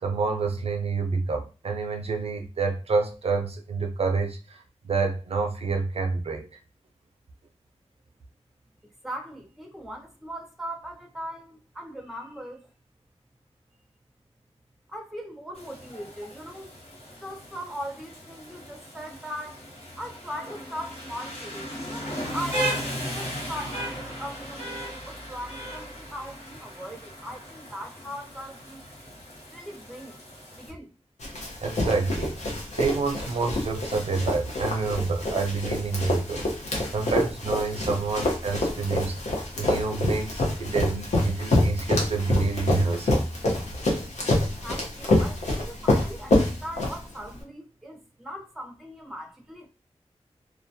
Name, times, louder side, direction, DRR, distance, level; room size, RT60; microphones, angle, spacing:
voice 1, 0.0-6.5 31.6-32.4 32.8-36.4 36.9-43.2, right 4 dB, 65° right, 0.4 m, -28 dB
voice 2, 9.0-12.7 14.9-16.7 17.2-19.6 19.9-22.7 23.1-28.8 29.5-30.2 30.5-30.9 44.6-49.7, equal, ahead, 0.6 m, -39 dB
Rain, 15.5-30.7, equal, 70° left, 1.2 m, -36 dB
Run, 31.2-47.4, left 1 dB, 85° left, 0.7 m, -27 dB
2.2 x 2.2 x 2.6 m
wide cardioid pair, 65°, 11 cm